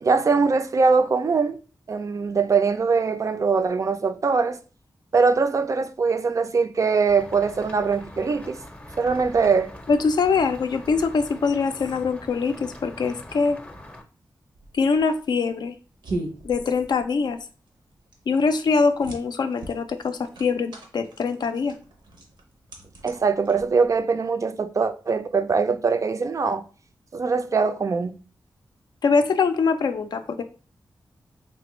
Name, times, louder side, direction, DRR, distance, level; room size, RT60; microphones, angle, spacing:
voice 1, 0.0-1.6 1.9-4.6 5.1-8.6 9.0-9.7 23.0-26.6 27.1-28.2, right 4 dB, 45° right, 0.3 m, -22 dB
sound 1, 7.1-14.0, left 1 dB, 15° left, 0.5 m, -43 dB
voice 2, 9.9-13.6 14.7-15.8 16.4-17.4 18.3-21.7 29.0-30.4, left 4 dB, 70° left, 0.4 m, -23 dB
sound 2, 14.5-24.1, right 2 dB, 85° right, 0.7 m, -39 dB
3.3 x 2.1 x 3.0 m
cardioid pair, 65°, 8 cm